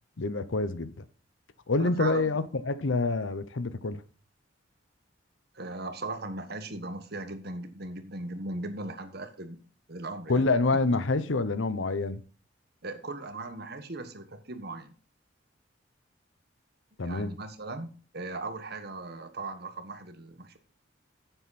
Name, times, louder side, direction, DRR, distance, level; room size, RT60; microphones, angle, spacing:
voice 1, 0.2-1.0 1.7-4.0 10.3-12.2 17.0-17.3, left 3 dB, 90° left, 0.8 m, -27 dB
voice 2, 1.8-2.3 5.5-9.6 9.9-10.5 12.8-14.9 17.0-17.9 18.1-20.6, right 2 dB, 55° right, 1.4 m, -38 dB
10.0 x 8.0 x 4.2 m
head